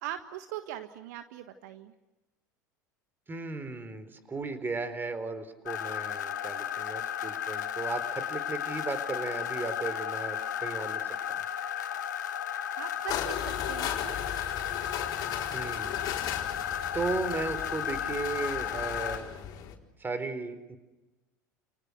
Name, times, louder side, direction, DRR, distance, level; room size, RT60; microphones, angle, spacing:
voice 1, 0.0-1.9 12.8-14.1, right 12 dB, 65° right, 9 dB, 1.6 m, -40 dB
voice 2, 3.3-11.0 11.3-11.4 15.5-16.0 16.9-19.3 20.0-20.8, right 3 dB, 20° right, 11 dB, 4.2 m, -35 dB
sound 1, 5.7-19.2, left 9 dB, 75° left, 2.5 m, -34 dB
sound 2, 13.1-19.7, left 10 dB, 45° left, 4.5 m, -37 dB
29.5 x 29.0 x 6.5 m, 1.1 s
figure-of-eight pair, 75°, 10 cm